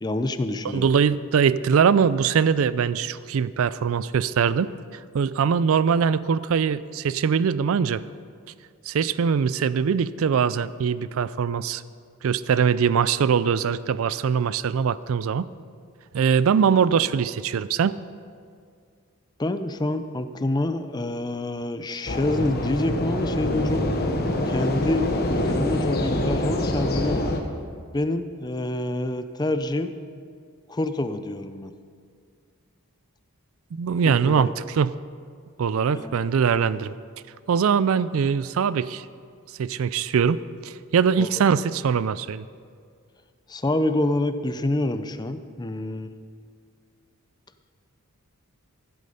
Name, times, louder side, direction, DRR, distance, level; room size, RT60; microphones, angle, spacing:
voice 1, 0.0-0.9 19.4-23.9 24.5-27.4 27.9-29.9 30.7-31.7 34.0-34.5 35.9-36.3 41.2-41.4 43.5-46.1, left 1 dB, 20° left, 10 dB, 0.5 m, -27 dB
voice 2, 0.6-4.7 5.1-8.0 8.9-11.8 12.2-15.5 16.1-18.0 33.7-34.9 35.6-36.9 37.5-39.0 39.6-42.4, right 6 dB, 65° right, 17 dB, 0.4 m, -22 dB
sound 1, 22.1-27.4, left 1 dB, 45° left, 1.1 m, -25 dB
15.0 x 8.4 x 5.4 m, 2.2 s
head